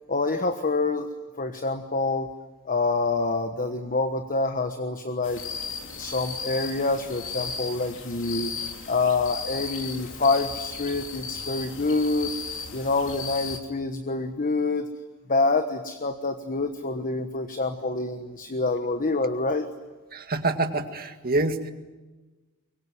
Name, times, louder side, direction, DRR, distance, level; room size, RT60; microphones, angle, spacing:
voice 1, 0.1-1.1 1.4-2.3 2.6-5.4 6.0-8.5 8.9-12.3 12.7-14.9 15.3-19.7, left 3 dB, 40° left, 7 dB, 1.3 m, -26 dB
sound 1, 5.2-13.6, left 5 dB, 60° left, 3.2 m, -36 dB
voice 2, 20.1-21.7, right 2 dB, 45° right, 6 dB, 2.0 m, -26 dB
24.0 x 23.0 x 9.5 m, 1.2 s
head